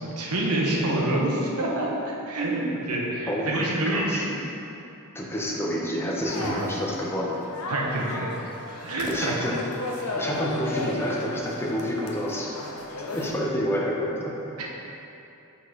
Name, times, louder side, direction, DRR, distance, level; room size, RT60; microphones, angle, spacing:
voice 1, 0.0-4.3 6.4-6.6 7.7-8.3 8.8-9.4 14.6-14.7, right 1 dB, 80° right, -2 dB, 1.0 m, -27 dB
voice 2, 3.3-4.3 5.1-7.4 9.1-9.6 10.1-12.5 13.1-14.3, equal, 10° left, -3 dB, 0.7 m, -28 dB
sound 1, 6.2-13.3, left 2 dB, 80° left, 0.7 m, -35 dB
5.4 x 4.1 x 4.8 m, 2.9 s
head